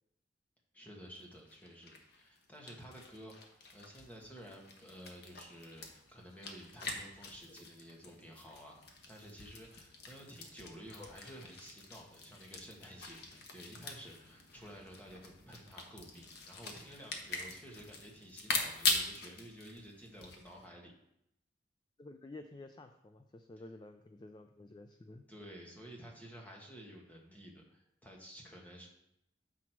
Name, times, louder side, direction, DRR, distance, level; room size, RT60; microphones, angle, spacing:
voice 1, 0.7-8.7 9.1-20.9 25.3-28.9, equal, 10° left, -1 dB, 1.5 m, -52 dB
sound 1, 1.1-1.2 1.5-20.7, left 3 dB, 60° left, 1.1 m, -42 dB
voice 2, 22.0-25.3, left 2 dB, 25° left, 7 dB, 0.3 m, -52 dB
7.3 x 6.0 x 4.6 m, 0.80 s
head